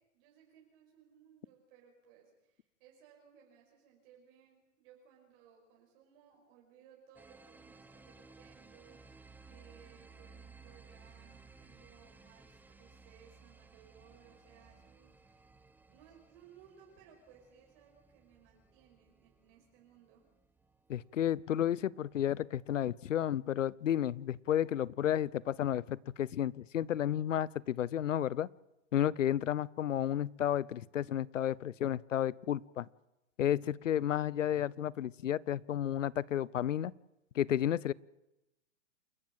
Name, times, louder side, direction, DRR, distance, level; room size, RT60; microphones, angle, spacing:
voice 1, 0.0-15.5 15.9-20.3, right 8 dB, 45° right, -1 dB, 5.5 m, -62 dB
sound 1, 7.1-22.6, right 4 dB, 5° right, 1.1 m, -59 dB
voice 2, 20.9-28.5 28.9-32.9 33.4-36.9 37.3-37.9, left 10 dB, 85° left, 24 dB, 0.7 m, -32 dB
28.5 x 14.0 x 7.5 m, 0.93 s
hypercardioid pair, 125°, 37 cm